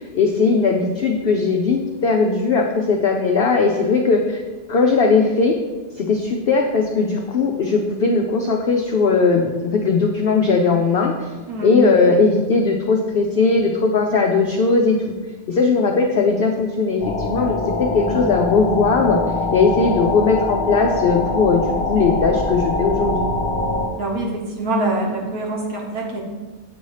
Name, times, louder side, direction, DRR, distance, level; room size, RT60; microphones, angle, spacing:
voice 1, 0.0-4.4 4.7-5.5 6.0-11.3 11.6-15.1 15.5-19.2 19.5-23.3, left 4 dB, 75° left, 2 dB, 0.5 m, -18 dB
voice 2, 11.5-11.8 23.9-26.2, right 2 dB, 80° right, -1 dB, 1.6 m, -24 dB
sound 1, 17.0-23.9, left 2 dB, 50° left, 0.9 m, -23 dB
8.1 x 2.8 x 4.7 m, 1.3 s
omnidirectional pair, 1.5 m